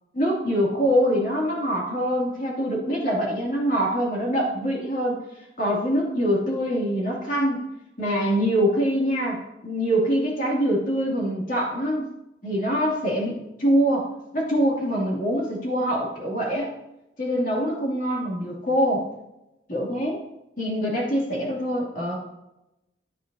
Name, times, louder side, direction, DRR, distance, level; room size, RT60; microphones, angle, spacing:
voice 1, 0.2-5.2 5.6-7.6 8.0-12.0 12.4-14.1 14.3-16.7 17.2-19.1 19.7-20.2 20.6-22.2, equal, 45° left, -3 dB, 2.4 m, -24 dB
11.0 x 8.9 x 2.7 m, 0.89 s
head